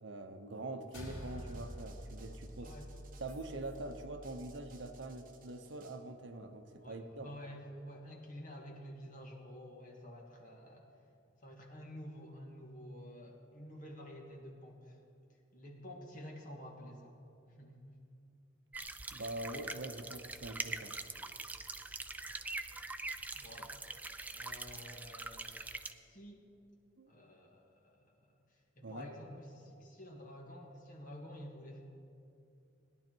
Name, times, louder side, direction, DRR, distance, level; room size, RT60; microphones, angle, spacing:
voice 1, 0.0-2.7 3.2-7.3 19.1-21.0 27.0-27.1 28.8-29.1, right 2 dB, 60° right, 7 dB, 0.9 m, -44 dB
sound 1, 0.9-5.5, equal, 80° left, 3.1 m, -49 dB
sound 2, 0.9-6.0, right 5 dB, 40° right, 1.2 m, -63 dB
voice 2, 2.6-2.9 6.8-10.9 11.4-15.0 15.5-17.2 17.5-18.0 23.3-23.8 24.3-26.5 27.1-31.8, equal, 40° left, 0 dB, 1.8 m, -50 dB
sound 3, 18.7-25.9, right 3 dB, 10° right, 0.3 m, -43 dB
18.0 x 10.5 x 4.5 m, 2.6 s
head